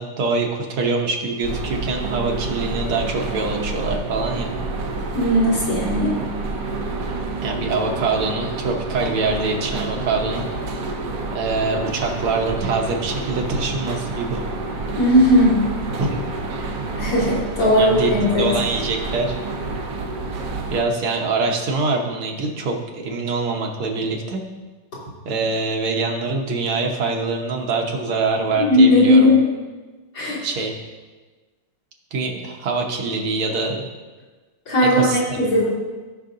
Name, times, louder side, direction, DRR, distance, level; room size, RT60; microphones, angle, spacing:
voice 1, 0.0-4.5 7.4-10.5 11.3-14.4 16.0-16.2 17.7-18.1 18.4-19.4 20.7-24.4 25.2-29.3 30.4-30.8 32.1-33.8 34.9-35.4, right 3 dB, 80° right, 0 dB, 2.0 m, -24 dB
sound 1, 1.4-20.8, right 3 dB, 60° right, 1.0 m, -28 dB
voice 2, 5.1-6.2 15.0-15.6 17.0-18.5 28.5-29.4 30.1-30.5 34.7-35.7, left 1 dB, 60° left, -9 dB, 3.7 m, -17 dB
17.5 x 5.8 x 2.6 m, 1.3 s
omnidirectional pair, 2.3 m